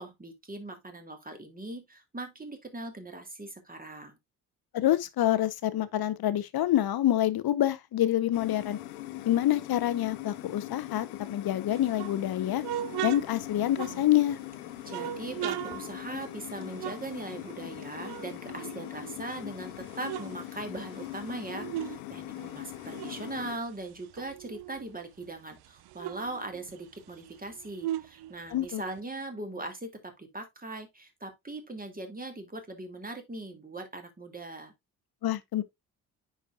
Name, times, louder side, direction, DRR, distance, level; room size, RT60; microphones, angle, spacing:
voice 1, 0.0-4.2 14.8-34.7, right 2 dB, 20° right, 2.6 m, -40 dB
voice 2, 4.7-8.8 9.3-12.6 13.0-14.4 28.5-28.8 35.2-35.6, left 12 dB, 60° left, 1.0 m, -27 dB
sound 1, 8.3-23.6, left 15 dB, 85° left, 0.9 m, -41 dB
sound 2, 11.7-14.4 14.8-17.7 18.0-19.4 19.7-22.0 22.3-24.9 25.2-25.3 25.6-29.0, right 13 dB, 60° right, 0.7 m, -39 dB
9.7 x 4.7 x 2.4 m
hypercardioid pair, 45°, 43 cm